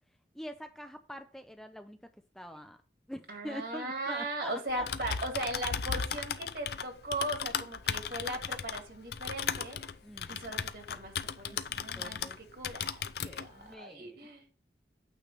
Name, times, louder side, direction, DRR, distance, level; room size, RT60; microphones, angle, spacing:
voice 1, 0.3-2.0 2.3-2.8 3.1-4.9 10.0-10.6 11.5-11.6 11.9-12.4 13.2-14.2, equal, ahead, 7 dB, 0.4 m, -45 dB
voice 2, 3.3-9.8 10.3-12.9 13.2-14.5, right 1 dB, 60° right, 3 dB, 1.9 m, -38 dB
Typing, 4.7-12.4 12.6-13.5, left 7 dB, 65° left, 0.5 m, -36 dB
8.9 x 3.2 x 6.5 m, 0.40 s
head